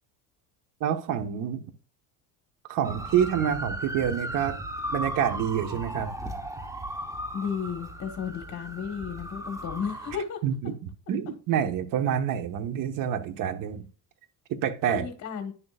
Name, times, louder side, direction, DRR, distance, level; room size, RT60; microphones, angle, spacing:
voice 1, 0.8-1.6 2.7-4.6 4.9-6.1 10.4-10.7 11.1-13.9 14.5-15.0, right 9 dB, 60° right, 1.3 m, -27 dB
sound 1, 2.8-10.2, right 1 dB, 10° right, 1.0 m, -36 dB
voice 2, 7.3-10.7 14.9-15.5, left 7 dB, 45° left, 1.4 m, -33 dB
10.5 x 6.8 x 2.4 m
supercardioid pair, 95°, 37 cm